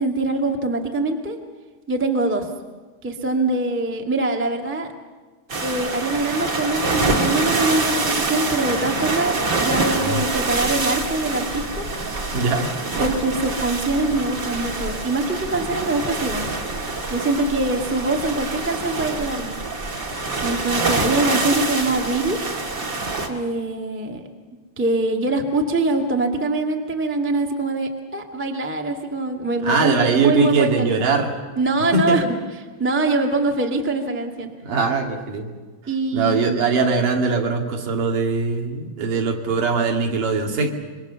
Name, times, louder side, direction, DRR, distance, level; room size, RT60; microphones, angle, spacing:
voice 1, 0.0-1.4 1.9-2.4 3.0-4.9 5.6-11.8 13.0-16.5 17.1-19.6 20.4-22.4 23.3-24.3 24.8-31.0 31.5-32.4 32.8-34.5 35.9-36.6, right 2 dB, 10° right, 2 dB, 0.5 m, -23 dB
sound 1, 5.5-23.3, right 3 dB, 30° right, 2.3 m, -25 dB
voice 2, 12.3-12.7 29.6-31.3 31.9-32.2 34.6-35.5 36.1-40.7, right 4 dB, 55° right, 2 dB, 3.8 m, -21 dB
27.0 x 23.5 x 7.0 m, 1.4 s
omnidirectional pair, 4.7 m